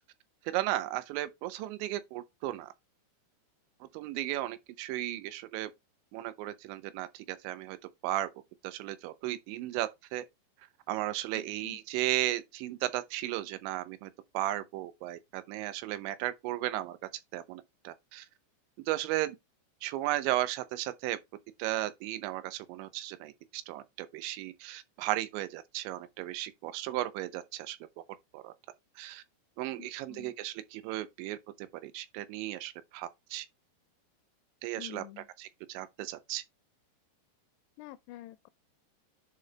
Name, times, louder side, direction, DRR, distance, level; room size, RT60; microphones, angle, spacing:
voice 1, 0.5-2.7 3.8-5.7 6.1-7.8 8.0-8.3 8.6-10.2 10.9-17.0 17.3-18.3 18.9-19.4 19.8-21.2 21.6-27.8 28.3-28.5 29.0-29.2 29.6-33.5 34.6-36.4, right 15 dB, 85° right, 3.1 m, -35 dB
voice 2, 11.4-11.8 29.8-30.3 34.8-35.3 37.8-38.5, left 14 dB, 85° left, 2.5 m, -48 dB
10.5 x 4.0 x 3.3 m
omnidirectional pair, 5.2 m